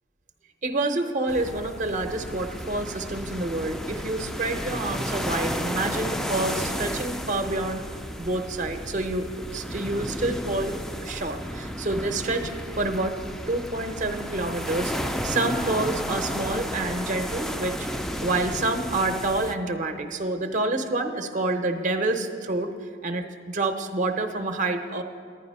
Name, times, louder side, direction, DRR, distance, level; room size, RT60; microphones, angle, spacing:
voice 1, 0.6-7.8 8.2-10.8 11.0-12.5 12.8-13.1 13.5-17.9 18.2-22.7 23.0-25.0, right 2 dB, 40° right, 7 dB, 0.6 m, -28 dB
sound 1, 1.3-19.6, equal, ahead, 0.3 m, -33 dB
10.5 x 9.9 x 5.3 m, 2.2 s
head